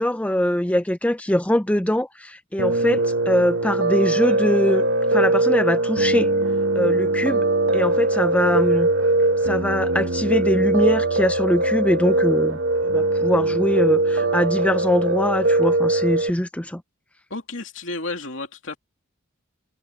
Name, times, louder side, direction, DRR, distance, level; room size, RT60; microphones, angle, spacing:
voice 1, 0.0-6.3 6.7-7.4 7.7-8.9 9.4-16.8, left 1 dB, 5° left, 0.6 m, -23 dB
Piano, 2.6-16.3, right 2 dB, 65° right, 1.4 m, -21 dB
voice 2, 17.3-18.8, left 2 dB, 65° left, 2.9 m, -32 dB
head